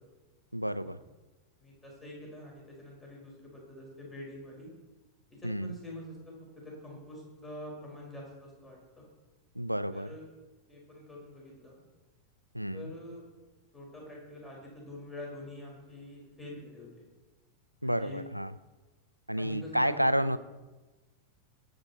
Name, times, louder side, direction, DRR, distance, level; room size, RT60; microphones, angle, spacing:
voice 1, 0.5-1.0 5.4-5.7 9.5-10.1 12.5-12.9 17.8-18.5 19.3-20.4, equal, 90° right, 14 dB, 0.5 m, -30 dB
voice 2, 1.6-4.7 5.3-9.1 9.9-10.2 10.7-11.8 12.7-13.2 13.7-17.1 17.8-18.2 19.3-20.3, left 1 dB, 10° left, -1 dB, 4.6 m, -46 dB
23.0 x 8.8 x 4.1 m, 1.2 s
figure-of-eight pair, 90°, 0 cm